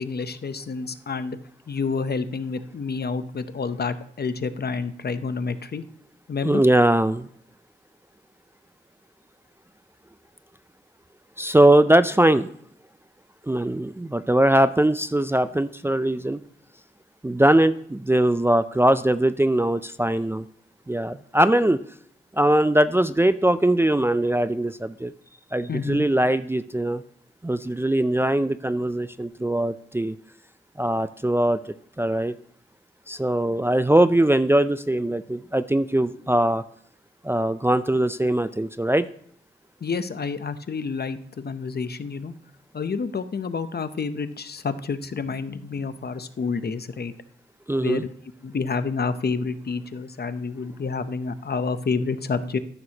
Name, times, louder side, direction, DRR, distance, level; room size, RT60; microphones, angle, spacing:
voice 1, 0.0-1.4 1.7-5.8 6.3-6.6 25.7-26.1 39.8-42.3 42.7-47.1 47.8-48.1 48.4-52.6, left 4 dB, 50° left, 11 dB, 0.7 m, -29 dB
voice 2, 6.4-7.3 11.4-12.5 13.5-16.4 17.2-20.4 20.9-21.8 22.4-25.1 25.5-27.0 27.4-30.2 30.8-31.6 32.0-32.3 33.1-36.6 37.2-39.1 47.7-48.0, right 1 dB, 10° right, 12 dB, 0.4 m, -21 dB
14.0 x 6.1 x 2.9 m, 0.66 s
wide cardioid pair, 75°, 21 cm